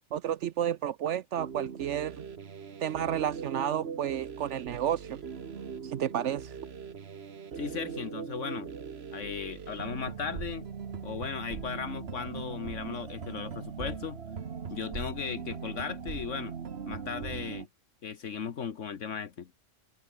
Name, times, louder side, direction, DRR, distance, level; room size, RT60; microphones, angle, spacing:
voice 1, 0.1-2.2 2.8-5.2 5.8-6.5, right 10 dB, 75° right, 1.0 m, -31 dB
sound 1, 1.4-17.7, right 6 dB, 55° right, 1.5 m, -40 dB
voice 2, 7.6-8.7 9.1-10.7 11.0-14.2 14.7-16.5 16.9-17.7 18.0-19.5, left 6 dB, 75° left, 1.6 m, -37 dB
omnidirectional pair, 1.3 m